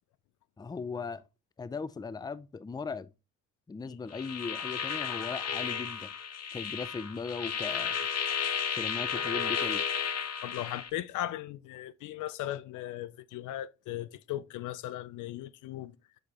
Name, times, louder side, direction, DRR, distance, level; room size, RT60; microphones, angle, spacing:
voice 1, 0.6-1.2 1.6-3.1 3.7-6.1 6.5-8.1 8.7-9.8, left 4 dB, 15° left, 0.4 m, -38 dB
sound 1, 4.1-10.9, left 7 dB, 55° left, 0.9 m, -33 dB
voice 2, 10.4-15.9, left 13 dB, 80° left, 0.5 m, -37 dB
6.3 x 5.1 x 2.9 m
cardioid pair, 90°, 30 cm